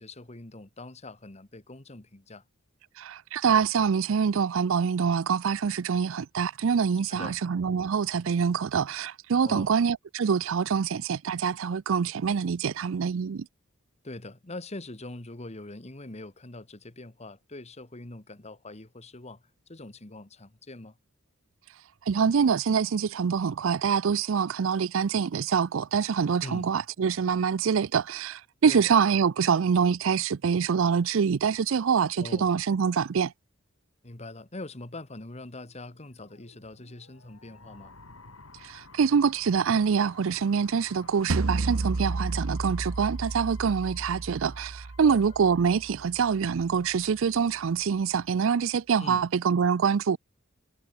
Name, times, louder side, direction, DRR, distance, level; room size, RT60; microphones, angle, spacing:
voice 1, 0.0-2.4 7.1-7.4 9.4-9.7 14.0-19.4 19.7-21.0 26.4-26.7 28.7-28.9 32.2-32.5 34.0-37.9 45.0-45.2 49.0-49.3, left 2 dB, 30° left, 1.6 m, -43 dB
voice 2, 3.0-13.5 22.1-33.3 38.6-50.2, right 6 dB, 65° right, 0.4 m, -25 dB
sound 1, 35.9-46.8, left 3 dB, 85° left, 5.7 m, -53 dB
sound 2, 41.3-46.4, right 3 dB, 85° right, 0.9 m, -32 dB
head